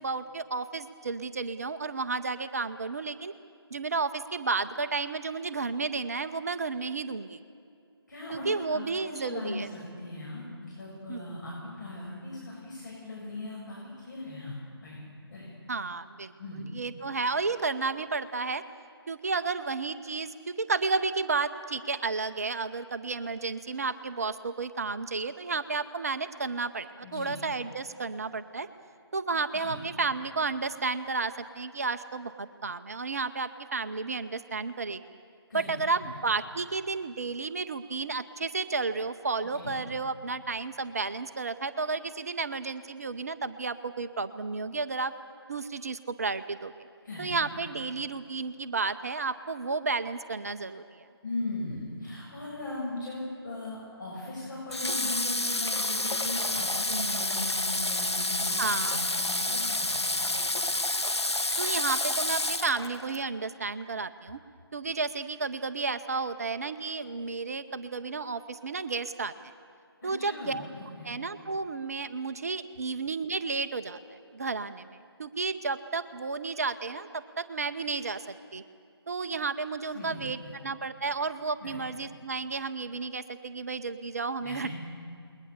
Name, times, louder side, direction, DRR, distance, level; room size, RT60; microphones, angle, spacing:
voice 1, 0.0-3.3 3.7-7.4 8.3-9.7 11.1-11.4 15.7-16.3 16.7-18.6 19.1-28.7 29.1-35.0 35.5-45.1 45.5-46.7 47.2-51.1 56.9-57.3 58.6-59.0 61.6-64.4 64.7-69.3 70.0-70.7 71.0-78.2 78.5-78.6 79.1-84.7, right 4 dB, 35° right, 11 dB, 0.7 m, -32 dB
voice 2, 8.1-13.8 14.0-15.0 15.3-15.5 16.4-16.6 27.0-27.4 29.5-29.8 35.5-35.7 36.0-36.1 39.5-39.8 47.0-47.7 51.2-60.3 70.0-71.1 79.9-80.5 81.6-81.8 84.4-84.7, left 2 dB, 45° left, -5 dB, 6.8 m, -39 dB
Water / Water tap faucet, 54.7-63.2, left 2 dB, 80° left, 1.3 m, -29 dB
28.0 x 21.0 x 7.0 m, 2.4 s
figure-of-eight pair, 150°, 14 cm